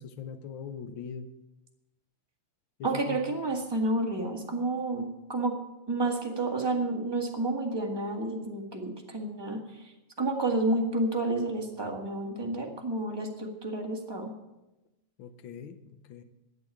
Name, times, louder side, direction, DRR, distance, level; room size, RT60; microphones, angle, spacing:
voice 1, 0.0-1.3 2.8-3.2 15.2-16.2, left 7 dB, 80° left, 10 dB, 1.0 m, -41 dB
voice 2, 2.8-5.6 5.9-14.3, right 2 dB, 10° right, 0 dB, 1.4 m, -30 dB
12.5 x 8.3 x 9.8 m, 0.99 s
omnidirectional pair, 3.3 m